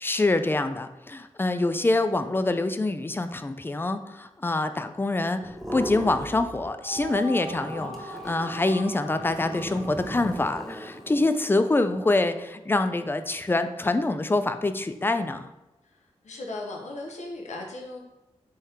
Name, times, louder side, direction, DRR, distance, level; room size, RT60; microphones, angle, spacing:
voice 1, 0.0-15.5, left 2 dB, 20° left, 9 dB, 0.4 m, -25 dB
sound 1, 5.4-6.7 6.9-11.3, equal, ahead, 1.0 m, -38 dB
sound 2, 6.7-11.9, right 1 dB, 55° right, 1.0 m, -41 dB
voice 2, 15.8-18.0, left 2 dB, 85° left, 0 dB, 0.9 m, -37 dB
3.5 x 3.5 x 4.2 m, 1.0 s
cardioid pair, 60°, 12 cm